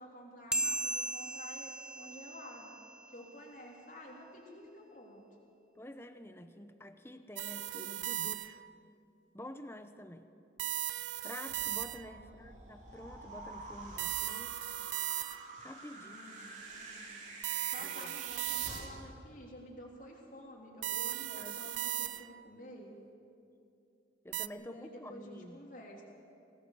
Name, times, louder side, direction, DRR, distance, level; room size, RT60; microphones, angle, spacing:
voice 1, 0.0-2.7 3.1-5.2 12.1-12.4 16.0-17.2 17.7-22.9 24.6-26.0, left 1 dB, 45° left, -1 dB, 3.7 m, -51 dB
sound 1, 0.5-3.4, right 2 dB, 5° right, 0.5 m, -37 dB
voice 2, 5.8-8.6 9.3-10.3 11.2-14.7 15.6-16.2 17.8-18.2 21.0-21.8 24.2-25.6, left 1 dB, 15° left, 9 dB, 0.9 m, -49 dB
sound 2, 7.4-8.8 10.6-12.3 14.0-15.6 17.4-19.1 20.8-22.5 24.3-24.5, right 14 dB, 90° right, 0.5 m, -37 dB
sound 3, 11.5-18.9, right 2 dB, 40° right, 3.0 m, -48 dB
22.0 x 18.5 x 6.9 m, 2.6 s
head